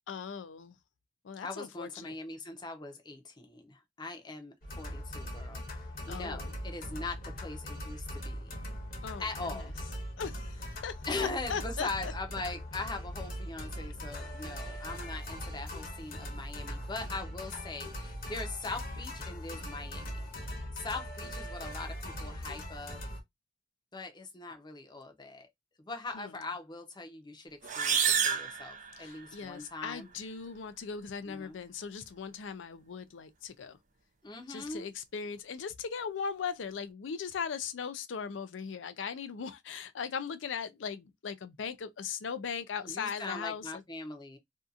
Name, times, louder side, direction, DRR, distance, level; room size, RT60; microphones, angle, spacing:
voice 1, 0.1-0.8 1.2-2.2 6.1-6.5 9.0-9.7 10.2-12.1 26.1-26.5 29.0-33.8 34.5-43.8, left 6 dB, 80° left, 0.4 m, -39 dB
voice 2, 1.4-8.5 9.2-9.7 11.0-20.3 20.7-23.0 23.9-25.5 25.8-30.1 31.3-31.6 34.2-34.9 42.8-44.4, left 3 dB, 25° left, 0.6 m, -41 dB
sound 1, 4.6-23.2, equal, 50° left, 0.9 m, -40 dB
sound 2, 27.6-29.5, right 7 dB, 45° right, 0.5 m, -30 dB
2.7 x 2.4 x 2.4 m
head